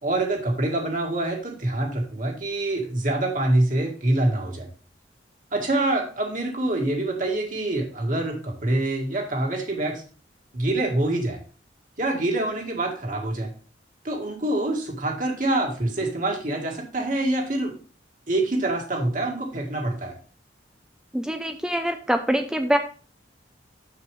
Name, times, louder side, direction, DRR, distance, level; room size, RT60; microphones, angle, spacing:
voice 1, 0.0-4.7 5.5-10.0 10.5-11.4 12.0-13.5 14.0-17.7 18.3-20.2, right 2 dB, 45° right, 0 dB, 1.9 m, -25 dB
voice 2, 21.1-22.8, equal, 5° right, 6 dB, 0.4 m, -24 dB
6.9 x 6.8 x 3.4 m, 0.38 s
head